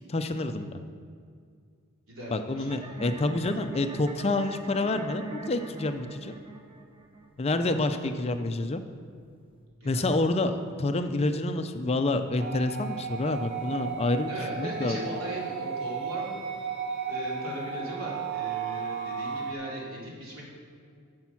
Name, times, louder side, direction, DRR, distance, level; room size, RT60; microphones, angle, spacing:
voice 1, 0.1-0.8 2.3-6.3 7.4-8.8 9.8-15.1, left 2 dB, 30° left, 8 dB, 0.4 m, -28 dB
voice 2, 2.1-3.0 7.6-8.1 9.8-10.1 10.4-10.5 14.2-16.4 17.1-20.4, right 1 dB, 75° right, -4 dB, 3.1 m, -38 dB
sound 1, 2.7-9.6, right 2 dB, 25° right, 0.8 m, -43 dB
sound 2, 12.4-19.5, right 6 dB, 55° right, 1.1 m, -34 dB
10.5 x 7.0 x 5.8 m, 2.2 s
head